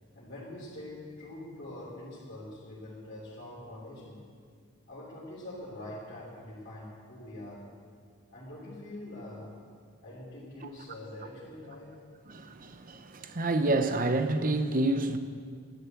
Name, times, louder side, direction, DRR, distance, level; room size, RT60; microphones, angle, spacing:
voice 1, 0.1-4.2 4.9-7.6 8.3-9.5 10.0-11.9, left 1 dB, 50° left, 3.2 m, -44 dB
voice 2, 12.3-15.2, right 2 dB, 40° right, 0.8 m, -28 dB
11.5 x 9.9 x 7.9 m
head